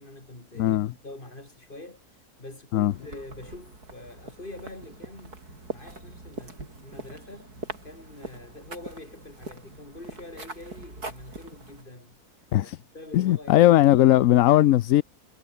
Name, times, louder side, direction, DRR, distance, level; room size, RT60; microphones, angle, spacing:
voice 1, 0.0-7.5 7.8-12.2 12.6-13.7, left 2 dB, 35° left, 4.6 m, -45 dB
voice 2, 0.6-0.9 2.7-2.9 12.5-12.8 13.1-15.0, left 14 dB, 70° left, 0.9 m, -18 dB
sound 1, 2.9-11.8, right 2 dB, 85° right, 6.2 m, -42 dB
omnidirectional pair, 1.6 m